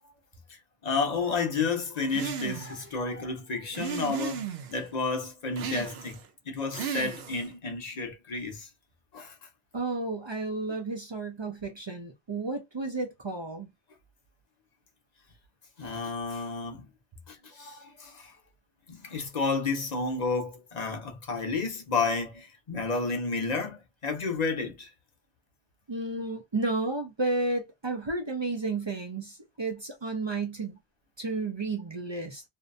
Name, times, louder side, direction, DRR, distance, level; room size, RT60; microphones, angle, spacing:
voice 1, 0.8-6.2 6.5-8.7 9.1-9.3 15.8-16.9 17.3-18.3 18.9-24.9 26.2-26.3, left 4 dB, 45° left, 0.7 m, -31 dB
sound 1, 2.1-2.9 3.7-4.8 5.6-6.3 6.7-7.5, right 7 dB, 75° right, 0.8 m, -35 dB
voice 2, 9.7-13.7 25.9-30.8 31.2-32.4, right 3 dB, 45° right, 0.3 m, -32 dB
2.6 x 2.1 x 2.5 m
omnidirectional pair, 1.1 m